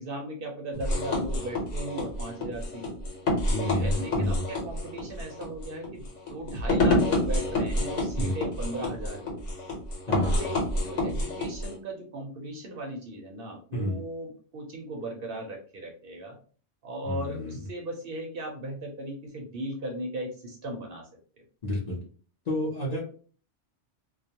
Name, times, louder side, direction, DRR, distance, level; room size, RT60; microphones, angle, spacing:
voice 1, 0.0-3.1 3.6-9.5 10.1-16.4 16.8-21.1 21.4-21.5, right 1 dB, 60° right, 1 dB, 0.7 m, -37 dB
sound 1, 0.7-11.8, left 1 dB, 85° left, 1.1 m, -28 dB
voice 2, 3.5-4.4 8.2-8.4 10.1-10.5 13.7-14.0 17.0-17.6 21.6-22.0 22.4-23.0, left 1 dB, 45° left, -4 dB, 0.6 m, -30 dB
2.2 x 2.1 x 2.7 m, 0.42 s
omnidirectional pair, 1.2 m